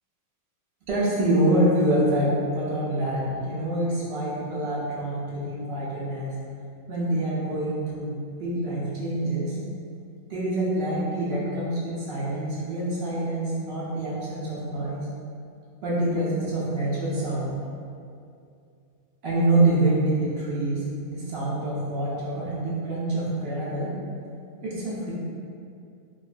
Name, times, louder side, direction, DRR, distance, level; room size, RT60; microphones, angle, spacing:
voice 1, 0.9-6.4 6.9-9.6 10.3-15.0 15.8-17.6 19.2-23.9 24.6-25.1, right 1 dB, 65° right, -7 dB, 0.6 m, -26 dB
2.3 x 2.3 x 2.3 m, 2.4 s
omnidirectional pair, 1.5 m